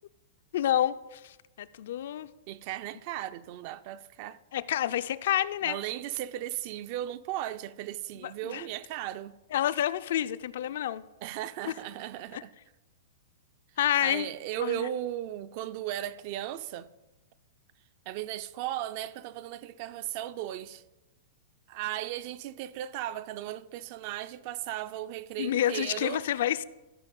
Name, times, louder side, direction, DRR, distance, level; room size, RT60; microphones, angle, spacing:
voice 1, 0.5-2.3 4.5-5.8 8.2-8.7 9.5-11.0 11.7-11.8 12.3-12.4 13.8-14.3 14.6-14.9 25.4-26.6, left 11 dB, 60° left, 0.4 m, -29 dB
voice 2, 2.5-4.4 5.6-9.3 11.2-12.5 14.0-16.9 18.1-20.8 21.7-26.2, right 13 dB, 35° right, 0.4 m, -36 dB
14.0 x 4.9 x 5.3 m
supercardioid pair, 170°, 0 cm